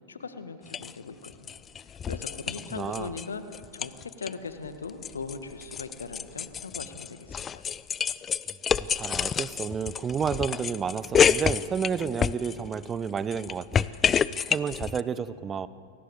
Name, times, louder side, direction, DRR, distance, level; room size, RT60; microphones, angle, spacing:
voice 1, 0.1-1.5 2.1-7.6, left 4 dB, 70° left, 9 dB, 1.9 m, -39 dB
sound 1, 0.7-0.9 1.2-3.3 3.5-4.3 4.6-12.8 13.2-15.0, left 7 dB, 20° left, 0.6 m, -28 dB
voice 2, 2.7-3.1 8.9-13.9 14.5-15.7, right 7 dB, 20° right, 16 dB, 0.9 m, -31 dB
29.5 x 23.0 x 8.2 m, 2.4 s
figure-of-eight pair, 90°, 0 cm